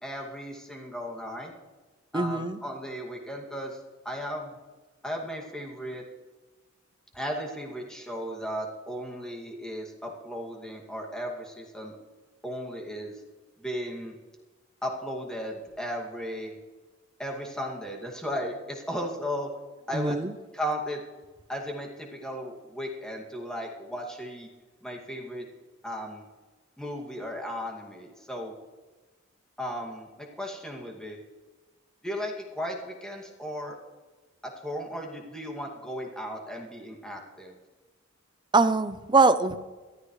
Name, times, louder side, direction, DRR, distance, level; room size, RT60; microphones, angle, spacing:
voice 1, 0.0-1.5 2.1-3.8 4.0-4.6 5.0-6.0 7.1-12.0 12.4-13.1 13.6-14.1 14.8-16.5 17.2-19.5 19.9-20.3 20.5-21.0 21.5-24.5 24.8-25.5 25.8-26.2 26.8-28.5 29.6-31.2 32.0-33.8 34.4-37.6, equal, 5° left, 0 dB, 2.3 m, -35 dB
voice 2, 2.1-2.6 19.9-20.3 38.5-39.6, right 3 dB, 25° right, 11 dB, 0.6 m, -22 dB
21.5 x 13.0 x 3.2 m, 1.3 s
head